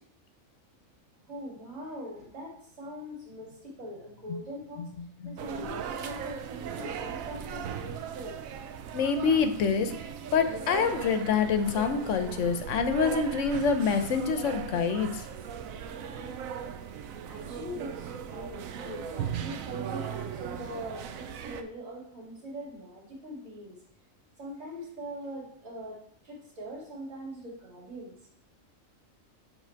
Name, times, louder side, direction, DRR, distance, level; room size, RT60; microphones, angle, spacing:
voice 1, 1.3-4.9 5.2-8.4 17.3-23.8 24.4-28.1, equal, 65° right, -4 dB, 2.7 m, -42 dB
sound 1, 5.4-21.6, right 7 dB, 80° right, 1.0 m, -38 dB
voice 2, 8.9-9.9 10.3-15.2, left 5 dB, 70° left, 9 dB, 0.9 m, -26 dB
7.3 x 3.7 x 4.5 m, 0.66 s
omnidirectional pair, 1.4 m